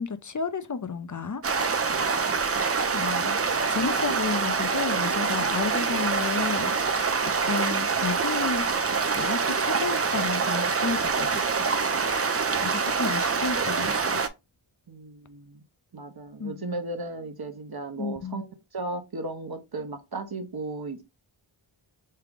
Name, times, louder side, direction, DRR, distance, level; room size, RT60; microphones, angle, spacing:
voice 1, 0.0-1.4 1.8-2.1 2.9-3.4 3.7-8.7 9.2-11.8 12.2-14.2 16.4-16.8 18.0-18.4, left 5 dB, 40° left, 0.6 m, -32 dB
sound 1, 1.4-14.3, right 5 dB, 30° right, 0.4 m, -25 dB
voice 2, 1.9-2.2 14.9-15.6 15.9-21.0, right 2 dB, 50° right, 0.8 m, -36 dB
3.6 x 3.3 x 3.4 m
wide cardioid pair, 60°, 48 cm